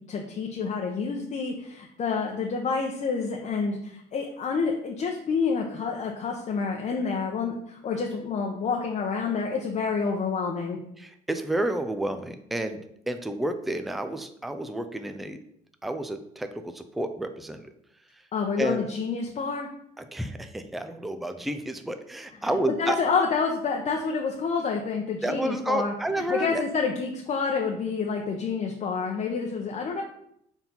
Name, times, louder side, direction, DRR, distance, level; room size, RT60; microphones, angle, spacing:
voice 1, 0.1-10.8 18.3-19.7 22.4-25.9 26.3-30.0, left 5 dB, 45° left, 0 dB, 0.8 m, -28 dB
voice 2, 11.0-12.8 13.1-15.4 15.8-17.7 18.6-18.8 20.1-23.0 25.2-26.6, right 1 dB, ahead, 8 dB, 0.4 m, -30 dB
4.6 x 3.9 x 5.4 m, 0.72 s
cardioid pair, 110°, 17 cm